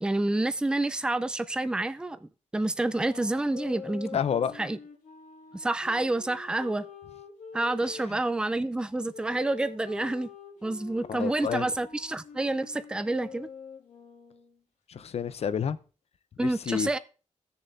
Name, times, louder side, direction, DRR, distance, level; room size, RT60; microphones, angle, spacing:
voice 1, 0.0-4.2 4.6-4.8 5.5-6.9 7.5-10.3 10.6-13.5 16.4-17.0, right 2 dB, 5° right, 0.4 m, -28 dB
sound 1, 2.8-8.4 9.1-14.6, left 5 dB, 90° left, 1.8 m, -46 dB
voice 2, 4.1-4.5 8.1-8.2 11.1-11.7 14.9-15.8 16.4-17.0, left 7 dB, 55° left, 0.6 m, -29 dB
17.0 x 6.7 x 2.6 m
wide cardioid pair, 155°, 12 cm